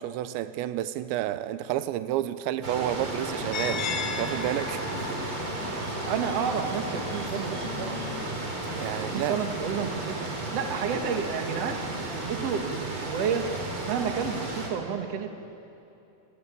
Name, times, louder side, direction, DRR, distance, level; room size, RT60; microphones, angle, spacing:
voice 1, 0.0-5.2 8.7-9.4, right 12 dB, 90° right, 3.1 m, -31 dB
sound 1, 2.6-14.7, right 2 dB, 30° right, 3.9 m, -34 dB
sound 2, 3.5-9.5, left 6 dB, 70° left, 1.6 m, -38 dB
voice 2, 6.0-8.0 9.0-10.2 10.5-13.4 13.9-15.3, right 7 dB, 55° right, 1.9 m, -31 dB
28.0 x 17.0 x 9.6 m
omnidirectional pair, 5.1 m